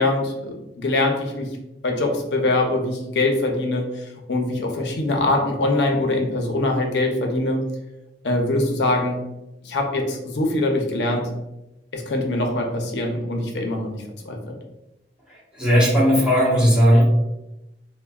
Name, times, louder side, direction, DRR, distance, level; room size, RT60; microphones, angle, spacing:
voice 1, 0.0-1.6 1.8-7.6 8.2-9.2 9.6-11.3 11.9-14.0 14.2-14.6, left 2 dB, 70° left, 2 dB, 0.5 m, -23 dB
voice 2, 15.6-17.1, equal, 5° right, -7 dB, 1.0 m, -16 dB
3.3 x 2.1 x 2.2 m, 0.92 s
head